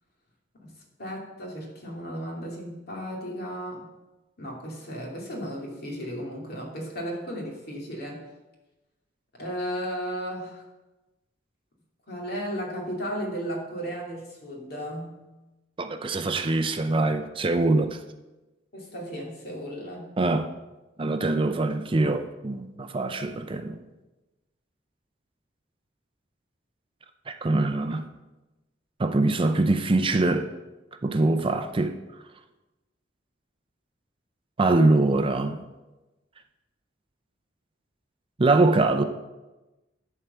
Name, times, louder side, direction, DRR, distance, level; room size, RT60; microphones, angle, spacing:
voice 1, 1.0-3.9 4.4-8.2 9.3-10.6 12.1-15.2 18.7-20.2, equal, 55° left, 2.6 m, -35 dB
voice 2, 15.8-18.0 20.2-20.5 21.0-23.8 27.3-28.1 29.0-30.5 31.0-32.0 34.6-35.6 38.4-39.0, right 2 dB, 30° right, 0.5 m, -23 dB
11.0 x 4.7 x 6.9 m
head